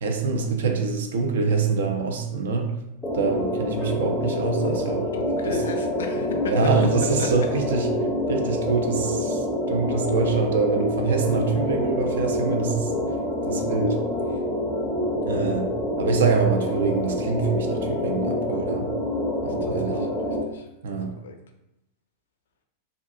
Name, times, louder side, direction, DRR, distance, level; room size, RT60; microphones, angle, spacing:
voice 1, 0.0-2.7 3.1-5.1 5.5-5.6 6.5-7.9 8.3-12.9 13.5-14.0 15.3-15.7 16.0-18.9 19.4-20.1 20.8-21.1, right 4 dB, 60° right, 4 dB, 0.4 m, -25 dB
sound 1, 3.0-20.4, left 1 dB, 10° left, 0.5 m, -26 dB
voice 2, 5.1-6.5 7.2-7.3 19.4-20.7 21.2-21.3, left 6 dB, 65° left, 5 dB, 0.3 m, -37 dB
2.5 x 2.4 x 2.4 m, 0.88 s
figure-of-eight pair, 90°, 0 cm